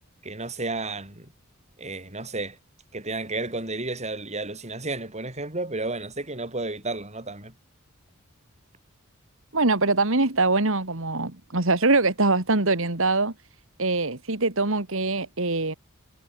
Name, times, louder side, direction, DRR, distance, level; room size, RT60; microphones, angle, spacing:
voice 1, 0.2-1.3 1.8-2.6 2.9-7.5, right 2 dB, 35° right, 7.2 m, -32 dB
voice 2, 9.5-13.3 13.8-15.7, right 3 dB, 70° right, 2.5 m, -23 dB
head